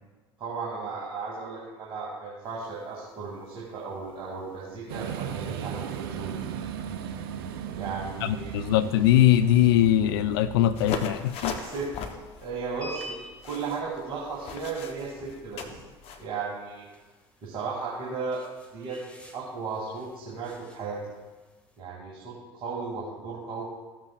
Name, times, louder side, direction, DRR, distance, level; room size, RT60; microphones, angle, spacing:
voice 1, 0.4-6.3 7.7-8.6 11.5-11.9 12.4-13.2 13.4-15.8 16.2-16.8 17.4-18.4 18.7-19.0 19.3-21.0 21.8-23.6, right 4 dB, 40° right, -5 dB, 2.3 m, -35 dB
sound 1, 2.4-21.8, equal, 10° left, 1.7 m, -52 dB
sound 2, 4.9-11.0, right 9 dB, 65° right, 0.6 m, -36 dB
voice 2, 8.2-11.5, left 12 dB, 65° left, 14 dB, 0.4 m, -21 dB
sound 3, 10.8-16.2, left 6 dB, 50° left, 0.9 m, -38 dB
14.5 x 7.4 x 2.3 m, 1.3 s
figure-of-eight pair, 65°, 13 cm